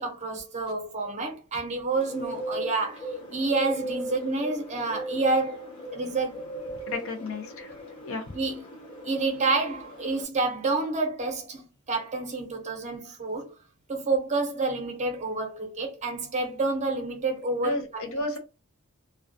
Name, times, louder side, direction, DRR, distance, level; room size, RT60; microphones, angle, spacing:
voice 1, 0.0-5.6 5.9-6.5 8.3-8.6 9.0-13.5 13.9-18.0, right 3 dB, 30° right, 0.6 m, -29 dB
Bird, 2.0-10.2, right 1 dB, 25° left, 0.8 m, -38 dB
voice 2, 6.9-7.7 8.0-8.2 17.6-18.4, left 2 dB, 60° left, 0.6 m, -32 dB
2.2 x 2.2 x 2.5 m
head